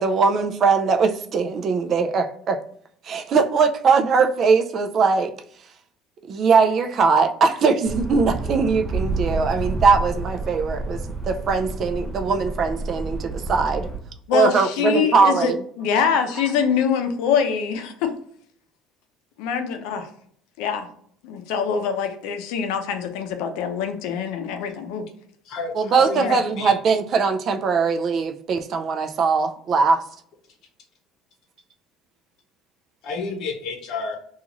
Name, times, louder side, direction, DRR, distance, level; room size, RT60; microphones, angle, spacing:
voice 1, 0.0-2.6 3.0-5.3 6.3-13.9 14.3-15.6 25.8-30.0, right 5 dB, 35° right, 0.3 m, -20 dB
sound 1, 7.8-14.0, right 3 dB, ahead, 0.6 m, -29 dB
voice 2, 14.3-15.5 15.8-18.1 19.4-20.1 20.6-20.9 21.2-25.0 26.2-26.4, left 7 dB, 80° left, 0.5 m, -24 dB
voice 3, 25.4-26.3 26.6-26.7 33.0-34.2, left 4 dB, 55° left, 0.8 m, -30 dB
2.9 x 2.4 x 3.8 m
cardioid pair, 160°, 0 cm